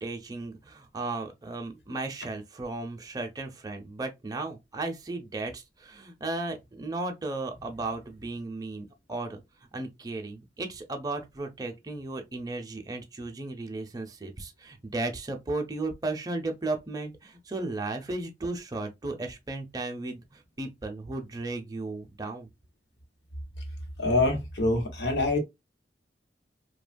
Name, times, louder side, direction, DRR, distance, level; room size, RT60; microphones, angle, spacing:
voice 1, 0.0-9.4 9.7-22.5, right 2 dB, 20° right, 0.5 m, -35 dB
voice 2, 24.0-25.4, left 2 dB, 75° left, 0.9 m, -25 dB
2.8 x 2.2 x 2.5 m
head